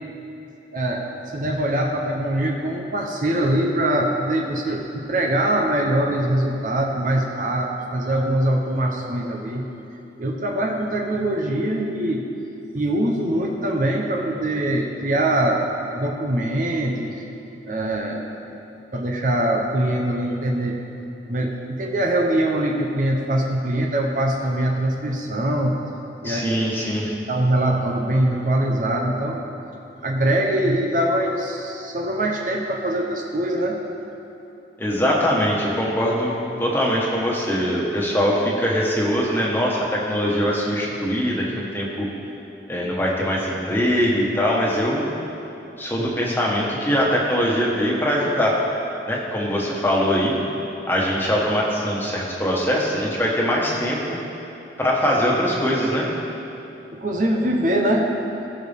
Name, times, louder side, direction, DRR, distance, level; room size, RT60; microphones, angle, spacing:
voice 1, 0.7-1.1 1.3-9.6 10.2-12.3 12.7-15.6 15.9-17.2 17.6-18.3 18.9-20.8 21.3-25.8 26.2-26.5 27.3-29.4 30.0-33.8 56.9-58.1, right 1 dB, 45° right, 0 dB, 0.9 m, -23 dB
voice 2, 26.2-27.1 34.8-42.1 42.7-45.1 45.8-48.6 49.1-50.3 50.9-54.2 54.8-56.1, equal, 10° left, -4 dB, 1.5 m, -22 dB
19.0 x 6.5 x 3.6 m, 3.0 s
head